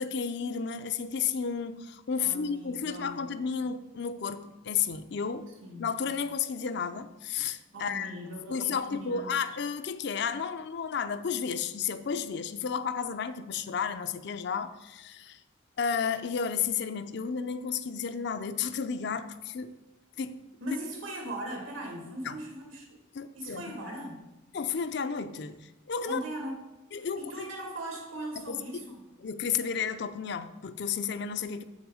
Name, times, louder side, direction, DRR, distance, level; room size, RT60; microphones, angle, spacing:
voice 1, 0.0-5.5 5.8-8.1 8.5-15.4 15.8-19.8 20.2-20.4 22.2-22.4 23.1-23.7 24.5-26.2 26.9-27.5 28.5-28.9 29.2-31.6, left 6 dB, 60° left, 11 dB, 0.5 m, -32 dB
voice 2, 2.2-3.2 5.6-5.9 7.7-9.3 20.6-23.0 23.3-24.3 26.1-26.6 27.0-28.8, right 1 dB, 85° right, 1 dB, 1.9 m, -39 dB
7.1 x 6.4 x 4.8 m, 1.0 s
head